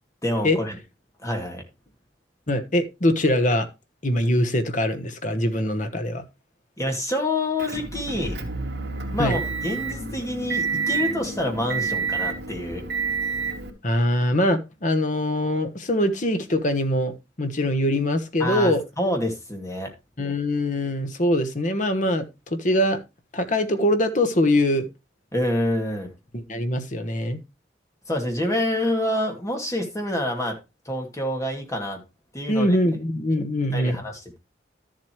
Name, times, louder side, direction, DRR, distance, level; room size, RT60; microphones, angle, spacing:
voice 1, 0.2-0.8 1.2-1.6 6.8-8.4 9.1-12.8 18.4-19.9 25.3-26.1 28.1-30.6 30.9-32.0 32.3-32.8 33.7-34.4, left 1 dB, 15° left, 2.4 m, -27 dB
voice 2, 2.5-3.7 4.0-6.2 9.2-9.4 13.8-18.8 20.2-23.0 23.3-24.9 26.3-27.4 32.5-34.0, left 1 dB, 40° left, 1.3 m, -23 dB
Motor vehicle (road) / Engine, 7.6-13.7, right 4 dB, 65° right, 2.4 m, -29 dB
12.5 x 7.7 x 3.1 m
head